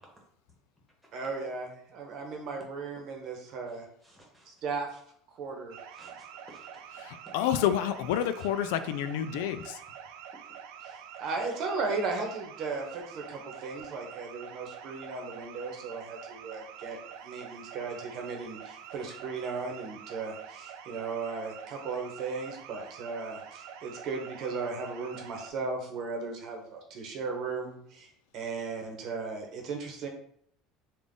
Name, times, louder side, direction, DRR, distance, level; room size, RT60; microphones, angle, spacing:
voice 1, 1.1-3.9 4.5-5.0 5.3-5.8 10.8-17.0 17.2-30.1, right 4 dB, 50° right, 3 dB, 0.9 m, -36 dB
voice 2, 3.7-4.5 5.9-6.8 8.2-8.5, right 1 dB, 5° right, -2 dB, 1.2 m, -57 dB
sound 1, 5.7-25.5, right 8 dB, 75° right, 0.4 m, -46 dB
voice 3, 7.0-9.8, left 10 dB, 85° left, 11 dB, 0.3 m, -29 dB
3.7 x 2.4 x 3.6 m, 0.66 s
cardioid pair, 140°, 0 cm